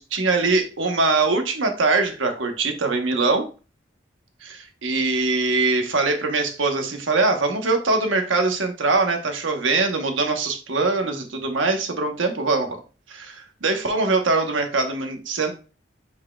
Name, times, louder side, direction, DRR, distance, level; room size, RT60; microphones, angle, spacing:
voice 1, 0.0-3.5 4.4-12.8 13.1-15.5, right 3 dB, 85° right, 5 dB, 1.2 m, -22 dB
8.5 x 4.7 x 2.4 m, 0.34 s
head